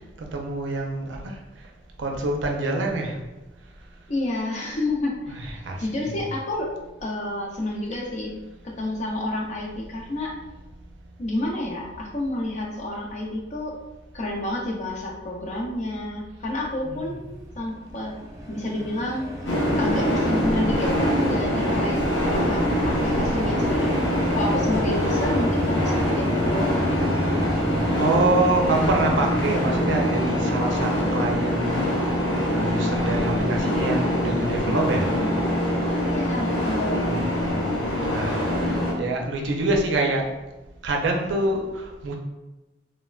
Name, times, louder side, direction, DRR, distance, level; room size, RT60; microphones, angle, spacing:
voice 1, 0.3-1.3 2.0-3.2 5.3-6.3 16.8-17.2 27.9-31.8 32.5-35.1 37.1-40.3 40.8-42.1, right 2 dB, 90° right, 1 dB, 0.5 m, -26 dB
voice 2, 4.1-6.7 7.0-8.4 8.6-10.3 11.2-13.8 14.1-17.2 17.6-18.1 18.5-20.9 21.3-24.0 24.3-27.0 36.1-37.2, left 1 dB, 40° left, -1 dB, 0.5 m, -30 dB
sound 1, 17.7-32.2, equal, 20° right, 0.4 m, -31 dB
sound 2, 19.4-38.9, equal, 90° left, 0.8 m, -24 dB
3.1 x 2.1 x 2.3 m, 1.1 s
head